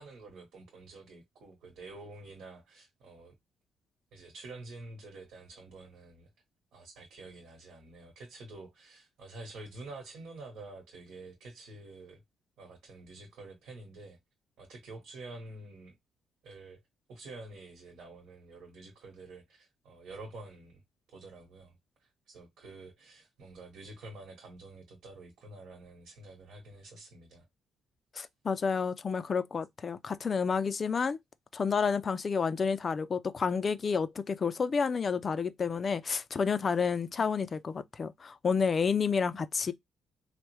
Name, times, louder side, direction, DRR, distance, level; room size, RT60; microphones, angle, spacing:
voice 1, 0.0-3.3 4.1-6.3 6.7-12.2 12.6-14.2 14.6-15.9 16.4-16.8 17.1-20.8 21.1-21.7 22.0-27.5 31.8-31.9, right 2 dB, 80° right, 1.2 m, -48 dB
voice 2, 28.2-31.2 31.5-39.7, left 5 dB, 40° left, 0.3 m, -30 dB
3.3 x 2.1 x 3.0 m
cardioid pair, 90°, 0 cm